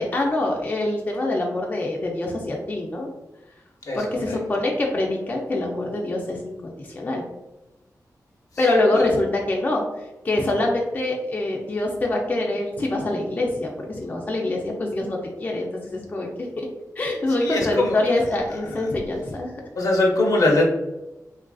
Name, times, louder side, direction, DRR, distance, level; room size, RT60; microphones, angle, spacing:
voice 1, 0.0-3.1 3.9-7.2 8.6-9.8 10.2-16.3 16.6-16.7 17.0-19.5, left 2 dB, 30° left, 0 dB, 0.4 m, -24 dB
voice 2, 3.9-4.4 8.9-9.1 17.4-18.0 19.8-20.7, left 2 dB, 65° left, -1 dB, 0.7 m, -21 dB
3.2 x 2.4 x 2.3 m, 1.0 s
wide cardioid pair, 130°, 6 cm